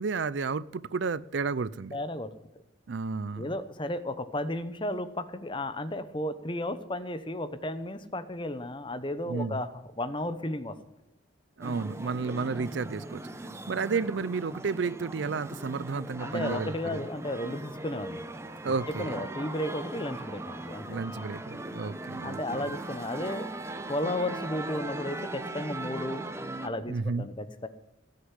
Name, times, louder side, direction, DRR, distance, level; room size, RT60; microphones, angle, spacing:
voice 1, 0.0-2.0 2.9-3.6 9.3-9.6 11.6-17.1 18.6-19.2 20.8-22.8 26.9-27.3, right 4 dB, 65° right, 19 dB, 0.5 m, -32 dB
voice 2, 1.9-2.3 3.4-10.8 16.2-18.2 18.7-21.0 22.2-23.5 23.9-26.2 26.6-27.7, left 1 dB, 25° left, 12 dB, 0.9 m, -34 dB
sound 1, 11.6-26.7, right 2 dB, 15° right, 0.9 m, -39 dB
17.5 x 6.7 x 9.8 m, 0.88 s
head